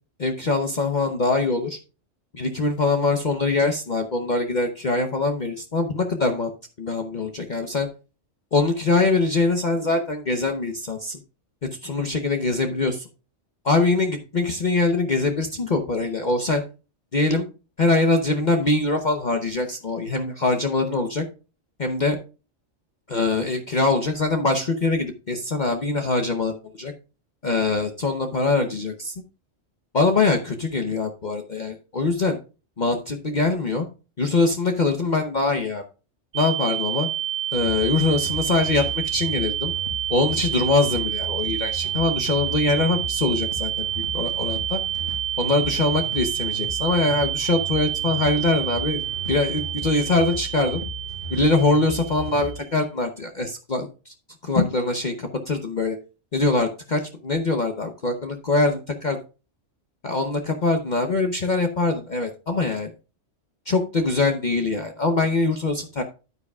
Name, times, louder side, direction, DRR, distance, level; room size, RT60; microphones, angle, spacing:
voice 1, 0.2-1.8 2.3-6.5 6.8-7.9 8.5-11.2 11.8-13.1 13.6-16.6 17.1-17.5 17.8-21.2 21.8-22.2 23.1-26.9 27.4-29.1 29.9-32.4 32.8-33.9 34.2-35.8 36.3-37.1 37.5-39.7 40.1-44.8 45.4-49.0 49.3-50.8 51.3-54.1 54.4-56.0 56.3-59.2 60.0-62.9 63.7-66.0, left 3 dB, 40° left, 4 dB, 0.9 m, -23 dB
sound 1, 36.3-52.7, right 12 dB, 70° right, 0.8 m, -28 dB
sound 2, 37.5-52.6, equal, 70° left, 4.0 m, -37 dB
9.7 x 9.6 x 2.3 m, 0.32 s
omnidirectional pair, 1.3 m